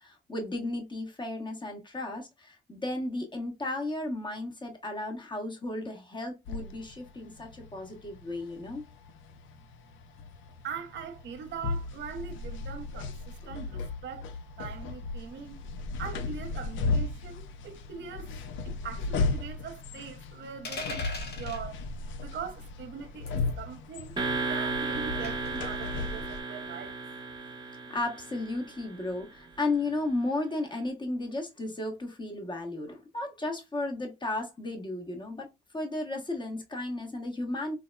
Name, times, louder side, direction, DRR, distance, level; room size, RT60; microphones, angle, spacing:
voice 1, 0.0-8.8 13.4-13.5 26.1-26.2 27.9-35.5 35.7-37.8, left 2 dB, 25° left, 1.1 m, -34 dB
sound 1, 6.5-26.4, left 3 dB, 75° left, 0.4 m, -36 dB
voice 2, 10.6-14.3 14.6-15.6 15.9-18.4 18.6-21.8 22.2-27.0, right 7 dB, 65° right, 0.7 m, -42 dB
sound 2, 20.6-21.6 23.3-23.5 25.2-25.6, left 2 dB, 55° left, 1.0 m, -38 dB
sound 3, 24.2-29.1, right 3 dB, 25° right, 0.8 m, -34 dB
3.6 x 2.0 x 2.2 m
cardioid pair, 90°, 20 cm